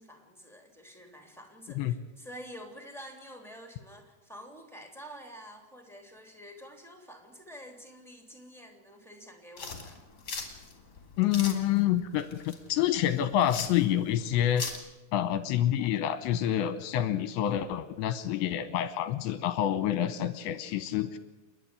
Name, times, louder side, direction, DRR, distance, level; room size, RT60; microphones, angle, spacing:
voice 1, 0.0-10.0, equal, ahead, 4 dB, 1.8 m, -48 dB
sound 1, 9.6-14.8, left 4 dB, 25° left, 2.6 m, -40 dB
voice 2, 11.2-14.7 15.1-21.2, left 11 dB, 75° left, 12 dB, 2.9 m, -28 dB
29.5 x 11.5 x 9.8 m, 1.0 s
omnidirectional pair, 5.8 m